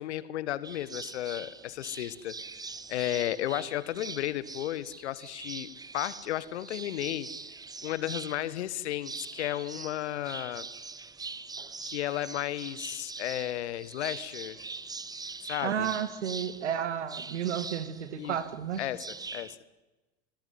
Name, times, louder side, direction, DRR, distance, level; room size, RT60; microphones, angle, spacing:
voice 1, 0.0-2.4 2.9-5.7 5.9-7.3 7.8-10.7 11.8-14.6 15.4-15.9 18.2-18.4 18.8-19.6, left 13 dB, 65° left, 16 dB, 1.5 m, -33 dB
sound 1, 0.6-19.6, right 4 dB, 10° right, 1.0 m, -43 dB
voice 2, 15.6-18.8, right 9 dB, 70° right, 11 dB, 2.5 m, -32 dB
27.0 x 17.5 x 9.5 m, 1.1 s
figure-of-eight pair, 85°, 36 cm